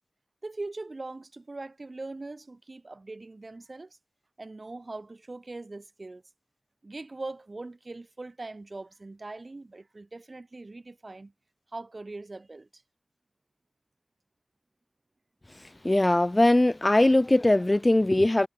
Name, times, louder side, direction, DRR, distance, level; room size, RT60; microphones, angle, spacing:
voice 1, 0.4-4.0 4.4-6.2 6.8-11.3 11.7-12.8, right 2 dB, 55° right, 2.1 m, -41 dB
voice 2, 15.6-18.5, left 1 dB, 30° left, 0.4 m, -21 dB
wide cardioid pair, 70°, 0 cm